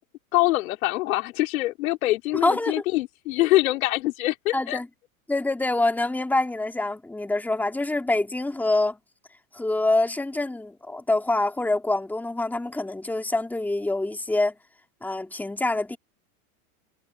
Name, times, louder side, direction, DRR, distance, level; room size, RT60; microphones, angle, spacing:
voice 1, 0.3-4.8, left 18 dB, 70° left, 4.1 m, -24 dB
voice 2, 2.4-2.8 4.5-4.9 5.3-9.0 9.5-14.5 15.0-16.0, left 2 dB, 5° left, 2.7 m, -25 dB
supercardioid pair, 135°, 43 cm